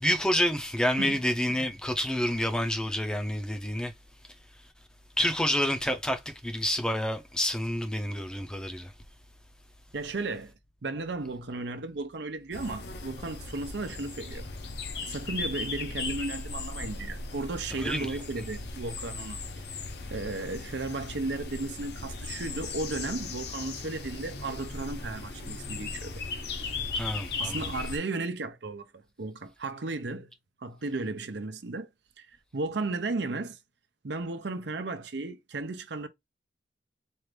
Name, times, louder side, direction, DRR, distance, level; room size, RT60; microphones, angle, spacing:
voice 1, 0.0-3.9 5.2-8.9 17.8-18.1 26.9-27.7, equal, 5° left, 0.6 m, -28 dB
voice 2, 1.0-1.3 9.9-10.5 10.8-14.5 15.0-19.4 20.1-26.2 27.4-30.3 30.6-31.9 32.2-32.3 32.5-33.6 34.0-36.1, right 3 dB, 70° right, 0.6 m, -34 dB
sound 1, 12.5-28.0, left 3 dB, 65° left, 0.9 m, -37 dB
4.5 x 2.5 x 3.3 m
head